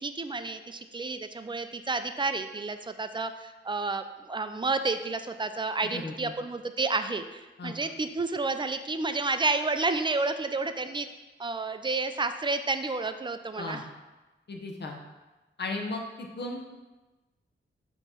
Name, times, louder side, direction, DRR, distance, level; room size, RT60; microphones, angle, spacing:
voice 1, 0.0-11.1 11.4-13.8, right 3 dB, 25° right, 9 dB, 0.4 m, -30 dB
voice 2, 5.9-6.3 7.6-7.7 13.6-13.8 14.5-15.0 15.6-16.7, left 2 dB, 55° left, 2 dB, 0.9 m, -35 dB
5.7 x 3.0 x 5.6 m, 1.1 s
wide cardioid pair, 100°, 21 cm